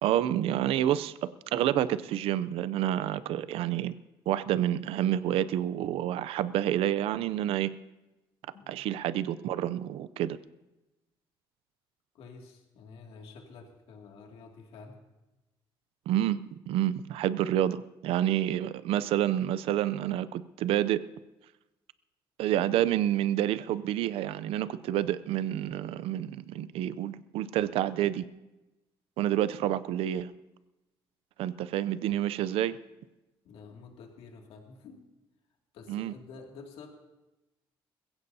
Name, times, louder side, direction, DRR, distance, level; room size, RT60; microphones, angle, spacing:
voice 1, 0.0-3.9 4.3-7.7 8.7-10.4 16.1-16.4 16.7-21.0 22.4-28.3 29.2-30.3 31.4-32.8 35.9-36.1, right 12 dB, 85° right, 15 dB, 0.5 m, -28 dB
voice 2, 8.5-8.8 12.1-15.0 33.4-35.1 35.7-36.9, left 4 dB, 80° left, 1 dB, 2.3 m, -49 dB
21.5 x 16.0 x 2.8 m, 1.0 s
cardioid pair, 135°, 10 cm